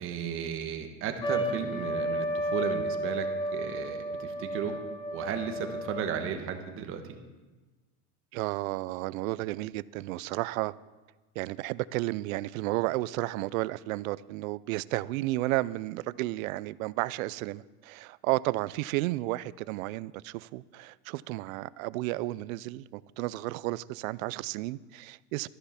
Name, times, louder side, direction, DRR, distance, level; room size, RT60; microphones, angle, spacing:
voice 1, 0.0-3.3 3.5-7.0, right 7 dB, 30° right, 1.2 m, -34 dB
Trumpet, 1.2-6.2, right 1 dB, 10° left, 0.4 m, -32 dB
voice 2, 8.3-10.7 11.4-25.5, right 18 dB, 85° right, 0.5 m, -32 dB
13.5 x 10.0 x 5.7 m
cardioid pair, 175°, 40 cm